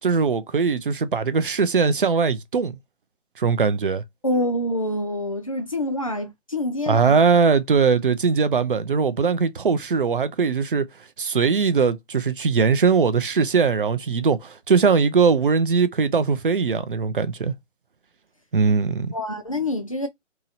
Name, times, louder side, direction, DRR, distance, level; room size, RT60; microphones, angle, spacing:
voice 1, 0.0-2.8 3.4-4.0 6.9-10.9 11.2-17.5 18.5-19.1, right 5 dB, 45° right, 0.4 m, -20 dB
voice 2, 4.2-7.2 19.1-20.1, left 1 dB, 30° left, 0.4 m, -26 dB
2.9 x 2.8 x 2.7 m
figure-of-eight pair, 145°, 37 cm